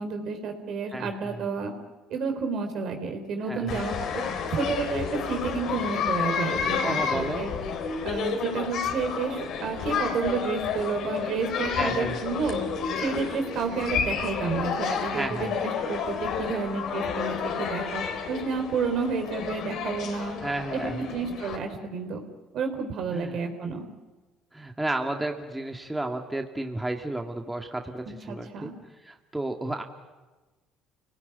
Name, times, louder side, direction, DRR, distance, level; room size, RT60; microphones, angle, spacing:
voice 1, 0.0-1.7 2.1-4.2 4.5-7.5 8.0-12.6 13.0-20.4 20.7-22.2 22.5-23.9 28.3-28.7, right 5 dB, 60° right, 5 dB, 4.2 m, -30 dB
voice 2, 0.9-1.4 3.5-3.8 6.8-7.5 11.7-12.2 15.1-15.5 20.4-21.1 23.1-23.4 24.5-28.7 29.1-29.8, right 2 dB, 10° right, 3 dB, 2.2 m, -32 dB
sound 1, 3.7-21.6, left 6 dB, 65° left, 3.7 m, -30 dB
29.0 x 18.5 x 9.6 m, 1.2 s
supercardioid pair, 75°, 0 cm